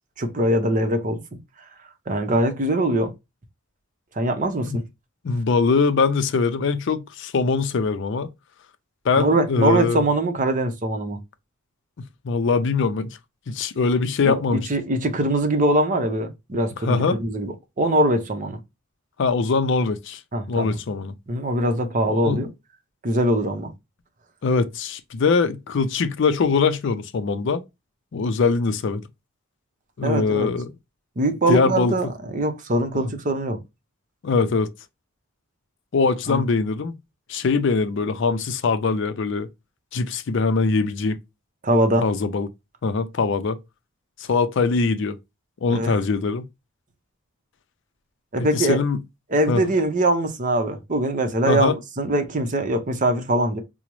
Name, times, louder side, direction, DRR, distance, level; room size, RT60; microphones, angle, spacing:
voice 1, 0.2-1.2 2.1-3.1 4.1-4.8 9.2-11.2 14.2-18.6 20.3-20.8 21.3-22.5 23.0-23.7 30.0-30.5 31.2-33.6 36.3-36.4 41.6-42.0 45.7-46.0 48.3-48.8 49.3-53.6, right 1 dB, 40° right, 0.7 m, -22 dB
voice 2, 5.2-8.3 9.0-10.0 12.2-13.2 13.5-14.6 16.8-17.2 19.2-20.2 20.5-21.1 22.1-22.4 24.4-27.6 28.1-29.0 30.0-30.7 31.5-31.9 32.9-33.1 34.2-34.7 35.9-36.9 37.3-39.5 39.9-41.2 42.0-42.5 42.8-43.6 44.2-45.2 45.6-46.5 48.5-49.0 49.5-49.6 51.5-51.7, left 4 dB, 60° left, 0.4 m, -22 dB
4.9 x 2.1 x 3.0 m
head